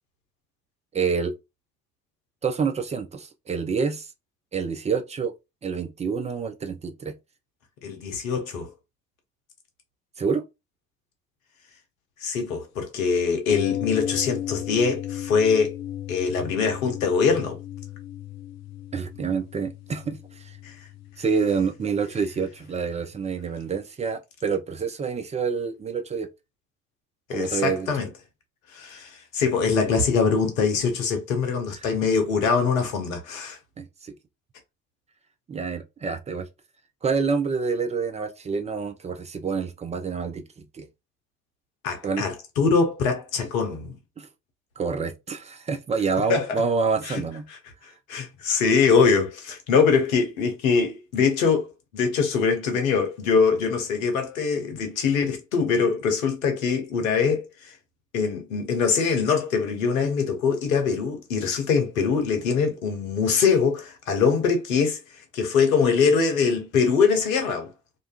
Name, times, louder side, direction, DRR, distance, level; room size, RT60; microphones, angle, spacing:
voice 1, 0.9-1.3 2.4-4.1 4.5-5.3 5.6-7.1 10.2-10.4 18.9-20.5 21.2-26.3 27.3-27.9 33.8-34.1 35.5-36.5 37.0-40.9 42.0-42.2 44.2-44.3 44.8-47.5, right 5 dB, 20° right, 0.3 m, -27 dB
voice 2, 7.8-8.7 12.2-15.8 16.1-17.6 20.6-20.7 27.3-28.1 28.7-33.6 41.8-43.9 46.3-46.6 47.0-47.2 47.5-47.6 48.1-57.7 58.1-65.0 65.3-67.7, left 5 dB, 75° left, 0.7 m, -23 dB
sound 1, 13.5-23.4 23.7-23.8, left 12 dB, 45° left, 0.4 m, -35 dB
2.5 x 2.3 x 2.3 m
figure-of-eight pair, 45°, 41 cm